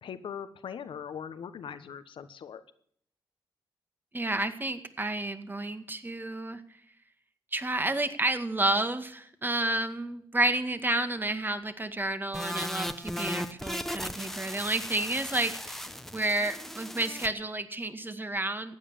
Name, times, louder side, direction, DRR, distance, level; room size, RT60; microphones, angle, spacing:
voice 1, 0.0-2.6, left 7 dB, 75° left, 12 dB, 1.2 m, -40 dB
voice 2, 4.1-6.6 7.5-15.9 16.1-18.8, right 2 dB, 25° right, 9 dB, 2.0 m, -30 dB
sound 1, 12.3-17.3, equal, 5° left, 1.3 m, -37 dB
15.5 x 9.6 x 7.1 m, 0.64 s
supercardioid pair, 50°, 9 cm